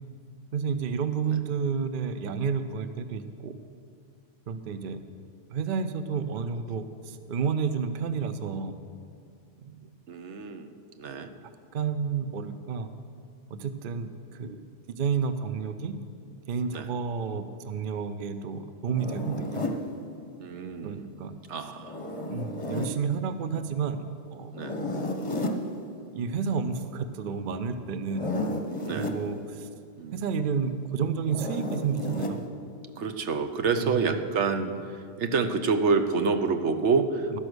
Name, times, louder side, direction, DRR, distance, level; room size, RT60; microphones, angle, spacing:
voice 1, 0.5-3.5 4.5-5.0 5.5-8.7 9.6-9.8 11.7-12.9 13.5-15.9 16.5-19.7 20.8-21.4 22.3-24.5 26.1-28.3 28.9-29.7 30.1-32.5 33.8-34.2 37.3-37.4, right 6 dB, 55° right, 10 dB, 0.7 m, -31 dB
voice 2, 10.1-11.3 16.7-16.9 20.4-21.1 21.5-22.0 24.5-24.8 28.8-29.1 30.0-30.2 33.0-37.4, right 4 dB, 70° right, 9 dB, 1.1 m, -28 dB
Zipper (clothing), 19.0-19.8 21.8-23.0 24.5-25.6 28.0-29.2 31.3-32.4, left 1 dB, 30° left, 0.9 m, -32 dB
12.5 x 10.0 x 6.2 m, 2.3 s
omnidirectional pair, 1.2 m